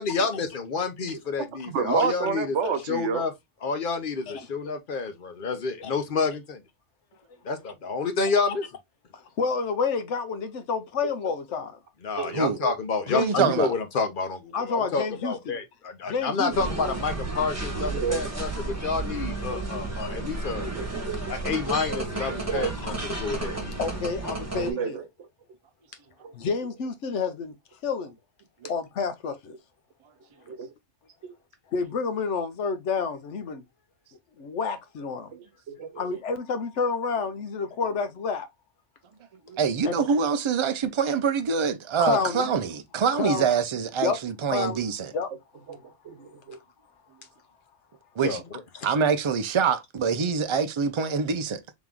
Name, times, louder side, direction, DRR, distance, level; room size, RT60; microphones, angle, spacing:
voice 1, 0.0-3.3 3.6-6.6 7.4-8.6 12.0-20.7 21.3-23.7 48.2-48.4 48.7-48.9, left 4 dB, 50° left, 0.9 m, -29 dB
voice 2, 1.7-3.3 12.2-12.7 17.8-18.3 20.8-21.5 22.5-23.0 23.4-23.7 24.5-25.0 26.2-26.3 30.5-30.7 31.2-31.3 35.7-36.1 45.7-45.8 46.0-46.6, right 7 dB, 90° right, 1.1 m, -30 dB
voice 3, 9.1-11.8 13.1-13.7 14.5-15.6 16.1-16.8 23.8-25.0 26.3-27.5 27.8-28.1 28.7-29.6 31.7-33.6 34.4-35.3 36.0-38.5 39.8-40.0 42.0-42.5 43.1-43.5 44.0-44.2 44.5-44.8 45.1-45.3, left 5 dB, 85° left, 1.1 m, -29 dB
voice 4, 13.2-13.7 39.5-45.1 48.2-48.4 48.8-51.6, right 6 dB, 45° right, 0.4 m, -25 dB
sound 1, 16.5-24.7, right 2 dB, 15° right, 1.1 m, -32 dB
3.6 x 3.0 x 3.5 m
omnidirectional pair, 1.2 m